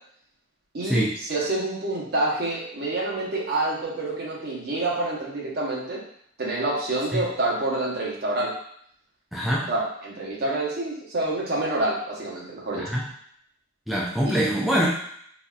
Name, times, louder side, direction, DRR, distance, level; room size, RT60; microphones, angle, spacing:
voice 1, 0.7-6.0 6.4-8.5 9.7-12.8 14.2-14.7, right 2 dB, 50° right, -4 dB, 0.9 m, -27 dB
voice 2, 9.3-9.7 12.8-13.1 13.9-14.9, equal, ahead, -5 dB, 0.3 m, -24 dB
3.9 x 2.3 x 2.3 m, 0.66 s
head